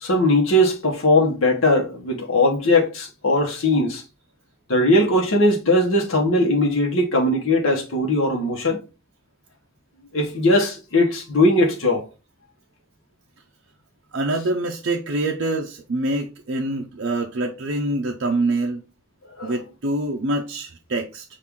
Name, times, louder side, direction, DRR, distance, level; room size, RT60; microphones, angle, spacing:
voice 1, 0.0-4.0 4.7-8.8 10.1-12.0 19.4-19.6, left 1 dB, 70° left, 0.9 m, -19 dB
voice 2, 14.1-18.8 19.4-21.2, right 2 dB, 55° right, 0.5 m, -25 dB
6.0 x 2.5 x 3.5 m
head